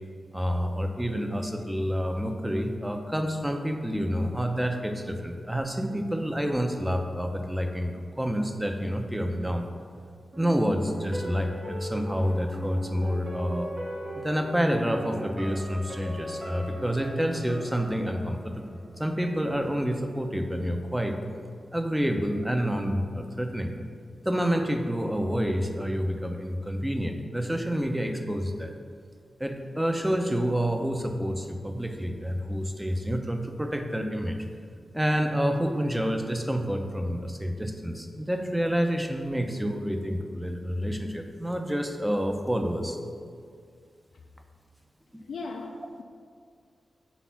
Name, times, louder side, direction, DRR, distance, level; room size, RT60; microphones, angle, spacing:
voice 1, 0.3-9.7 10.4-13.7 14.2-18.7 19.0-21.2 21.7-23.7 24.2-28.7 29.4-34.4 34.9-43.0 45.1-45.2, equal, 10° right, 5 dB, 0.6 m, -28 dB
sound 1, 10.3-19.3 19.6-19.7, equal, 55° right, 1.4 m, -39 dB
voice 2, 45.2-46.0, left 3 dB, 80° left, 1 dB, 0.4 m, -37 dB
5.0 x 4.1 x 5.6 m, 2.2 s
cardioid pair, 55°, 0 cm